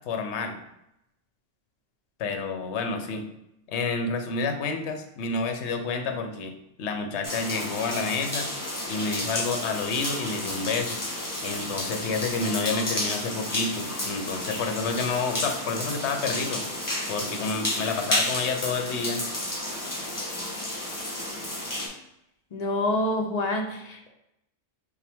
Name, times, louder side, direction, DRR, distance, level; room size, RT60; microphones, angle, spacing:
voice 1, 0.1-0.6 2.2-3.3 3.7-6.5 6.8-8.5 8.9-11.0 11.4-16.7 17.1-19.2, left 4 dB, 70° left, 5 dB, 0.9 m, -29 dB
sound 1, 7.2-21.9, left 1 dB, 20° left, 0.9 m, -31 dB
voice 2, 22.5-24.1, left 1 dB, 45° left, 3 dB, 0.6 m, -27 dB
5.4 x 2.2 x 3.4 m, 0.82 s
omnidirectional pair, 1.2 m